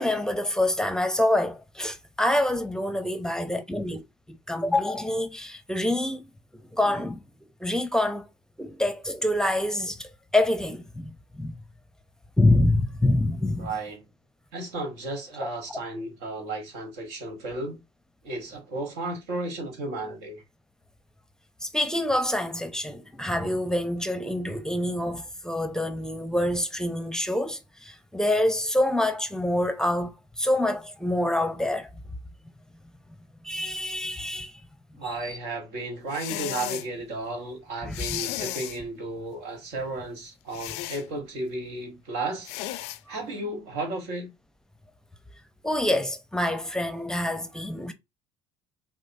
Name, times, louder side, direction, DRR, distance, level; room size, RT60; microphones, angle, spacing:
voice 1, 0.0-4.0 4.3-6.2 6.7-7.2 7.6-8.2 8.6-11.6 12.4-13.7 15.4-15.5 21.6-31.9 33.4-34.6 35.1-35.4 37.8-38.2 45.6-47.9, left 1 dB, 5° left, 0.6 m, -26 dB
voice 2, 13.6-14.0 14.5-17.8 18.2-20.4 35.0-42.5 43.1-44.3, right 2 dB, 85° right, 1.3 m, -34 dB
sound 1, 36.1-36.9 37.9-38.8 40.5-41.0 42.4-43.0, left 14 dB, 80° left, 0.4 m, -34 dB
5.0 x 2.0 x 2.6 m
supercardioid pair, 95°, 11 cm